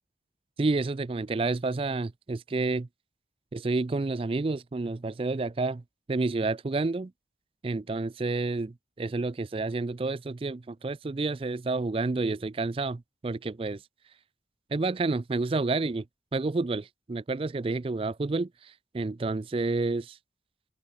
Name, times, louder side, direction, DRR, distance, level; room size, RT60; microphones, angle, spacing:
voice 1, 0.6-2.9 3.5-5.8 6.1-7.1 7.6-13.8 14.7-16.1 16.3-20.2, right 3 dB, 30° right, 0.4 m, -29 dB
head